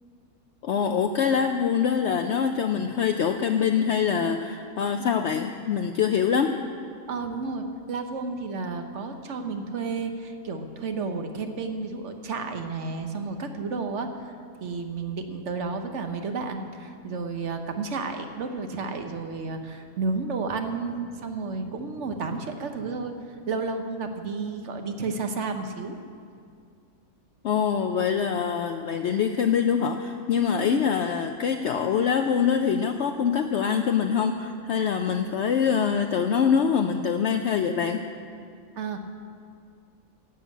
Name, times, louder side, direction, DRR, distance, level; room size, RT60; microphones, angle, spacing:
voice 1, 0.6-6.6 27.4-38.0, left 7 dB, 65° left, 6 dB, 0.7 m, -24 dB
voice 2, 7.1-14.3 14.6-23.1 23.5-26.0 30.6-30.8 38.7-39.0, right 4 dB, 60° right, 6 dB, 1.2 m, -32 dB
11.0 x 7.9 x 8.3 m, 2.3 s
omnidirectional pair, 1.5 m